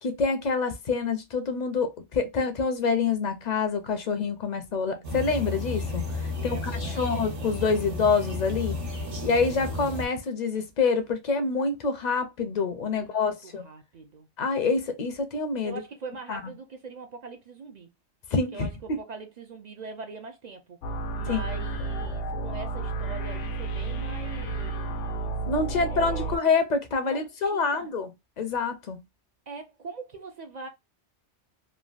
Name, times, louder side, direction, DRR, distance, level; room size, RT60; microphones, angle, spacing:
voice 1, 0.0-8.8 9.2-13.6 14.4-15.8 16.3-16.5 18.3-19.0 21.2-21.4 25.5-28.1 28.4-29.0, left 4 dB, 55° left, 0.5 m, -27 dB
sound 1, 5.0-10.1, left 2 dB, 80° right, 1.4 m, -32 dB
voice 2, 6.3-7.2 9.1-9.9 12.5-14.3 15.6-17.9 18.5-20.8 21.1-25.4 25.8-26.4 27.0-27.9 29.5-30.7, right 4 dB, 60° right, 0.4 m, -42 dB
sound 2, 20.8-26.4, right 3 dB, 85° left, 0.9 m, -31 dB
3.3 x 2.3 x 2.4 m
omnidirectional pair, 1.2 m